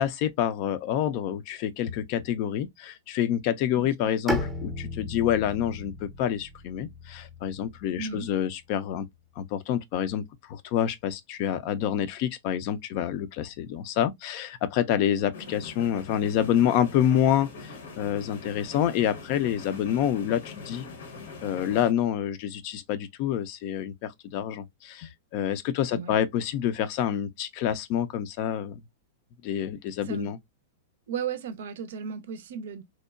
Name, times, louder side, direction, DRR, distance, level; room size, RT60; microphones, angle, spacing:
voice 1, 0.0-9.1 9.4-10.2 10.5-20.9 21.4-28.8 29.4-30.4, left 10 dB, 50° left, 0.4 m, -27 dB
voice 2, 3.8-4.1 8.0-8.3 25.9-26.1 30.0-30.3 31.1-32.8, right 7 dB, 65° right, 0.4 m, -35 dB
Bowed string instrument, 4.3-8.2, left 1 dB, 10° right, 0.6 m, -35 dB
sound 1, 15.3-21.9, left 3 dB, 70° left, 0.7 m, -42 dB
2.8 x 2.1 x 2.3 m
hypercardioid pair, 100°, 0 cm